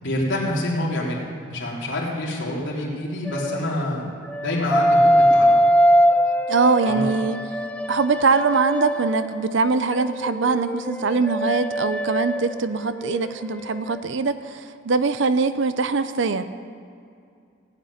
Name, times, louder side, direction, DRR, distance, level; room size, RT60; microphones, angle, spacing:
voice 1, 0.0-4.1 4.4-5.5 6.8-7.0, left 1 dB, 65° left, -5 dB, 3.2 m, -27 dB
sound 1, 3.3-3.8 4.3-9.4 9.9-13.5 13.8-14.0, equal, 5° left, 0.4 m, -22 dB
voice 2, 6.5-7.4 7.9-16.4, right 4 dB, 65° right, 11 dB, 0.6 m, -22 dB
16.5 x 6.1 x 9.5 m, 2.3 s
head